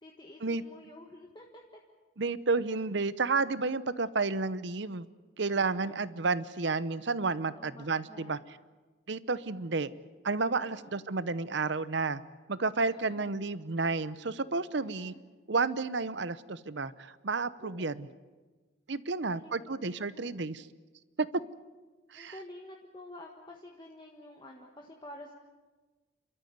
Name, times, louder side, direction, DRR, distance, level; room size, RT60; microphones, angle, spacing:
voice 1, 0.0-1.6 5.5-6.0 7.5-8.4 10.6-11.1 12.9-13.3 14.8-15.2 17.6-18.1 19.1-20.3 22.1-25.3, left 1 dB, 20° left, 0 dB, 1.6 m, -50 dB
voice 2, 2.2-5.1 5.4-8.4 9.1-9.9 10.2-12.2 12.5-15.1 15.5-18.1 18.9-20.7 21.2-21.3 22.1-22.3, right 4 dB, 60° right, 16 dB, 0.8 m, -31 dB
29.5 x 13.5 x 9.4 m, 1.3 s
head